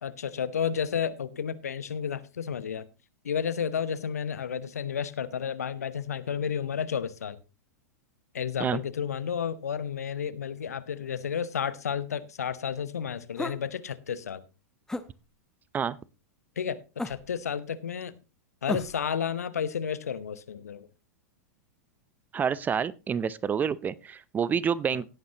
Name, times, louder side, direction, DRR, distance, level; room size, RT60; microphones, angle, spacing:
voice 1, 0.0-2.9 3.2-7.4 8.3-14.4 16.6-18.1 18.6-20.9 24.9-25.0, left 7 dB, 75° left, 1.0 m, -32 dB
sound 1, 13.4-13.7 14.9-15.1 17.0-17.4 18.7-19.1, left 2 dB, 5° left, 0.9 m, -33 dB
voice 2, 22.3-25.1, right 7 dB, 20° right, 0.5 m, -28 dB
16.5 x 9.4 x 2.9 m
figure-of-eight pair, 95°, 9 cm